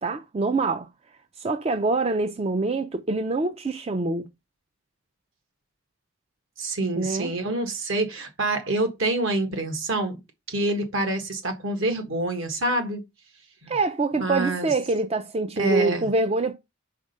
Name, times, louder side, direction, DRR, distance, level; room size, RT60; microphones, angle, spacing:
voice 1, 0.0-0.9 1.4-4.3 7.0-7.3 13.7-16.6, right 3 dB, 30° right, 0.4 m, -25 dB
voice 2, 6.6-10.2 10.5-13.0 13.6-13.7 14.2-14.7 15.6-16.1, right 2 dB, 70° right, 1.5 m, -26 dB
5.0 x 4.2 x 5.4 m
head